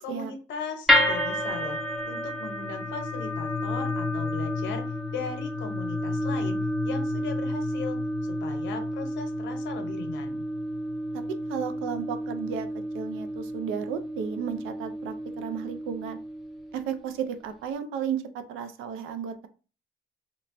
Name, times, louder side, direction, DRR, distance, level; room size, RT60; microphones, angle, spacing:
voice 1, 0.0-1.8 2.1-10.4, left 5 dB, 70° left, 4 dB, 0.8 m, -38 dB
sound 1, 0.9-17.1, left 1 dB, ahead, 0.5 m, -30 dB
voice 2, 11.5-12.7 12.9-16.2 16.7-18.2 18.5-19.5, right 7 dB, 85° right, 9 dB, 0.4 m, -33 dB
2.9 x 2.2 x 2.5 m, 0.36 s
cardioid pair, 125°, 20 cm